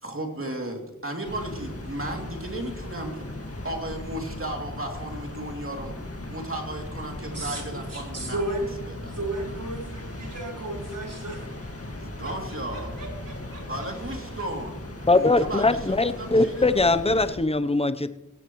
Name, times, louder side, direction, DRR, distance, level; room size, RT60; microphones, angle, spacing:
voice 1, 0.0-3.4 3.6-6.0 6.3-8.4 8.9-9.2 12.0-13.0 13.7-14.8 15.1-16.9, right 1 dB, 40° right, 1 dB, 2.8 m, -34 dB
sound 1, 1.2-17.4, left 1 dB, 45° left, 1.9 m, -38 dB
voice 2, 7.3-8.7 9.1-11.6 12.2-12.3 12.7-13.9, right 1 dB, 75° right, -2 dB, 4.2 m, -34 dB
voice 3, 15.1-18.1, left 2 dB, 20° left, 12 dB, 0.7 m, -21 dB
17.0 x 16.5 x 3.1 m, 1.0 s
wide cardioid pair, 65°, 33 cm